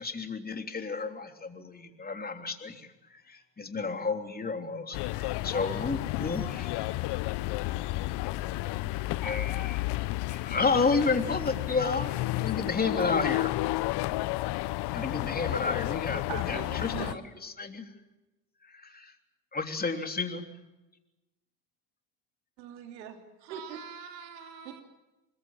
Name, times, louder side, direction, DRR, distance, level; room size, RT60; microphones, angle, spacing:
voice 1, 0.0-6.7 8.8-8.9 9.2-13.7 14.9-17.9 18.6-19.1 19.5-20.5, left 4 dB, 20° left, 5 dB, 3.3 m, -32 dB
sound 1, 4.9-17.1, left 18 dB, 55° left, 0.9 m, -32 dB
voice 2, 5.1-9.9, left 11 dB, 70° left, 4 dB, 5.2 m, -46 dB
voice 3, 16.3-17.2 22.6-24.8, right 8 dB, 85° right, 5 dB, 3.6 m, -42 dB
25.0 x 21.5 x 7.3 m, 1.0 s
supercardioid pair, 90°, 50 cm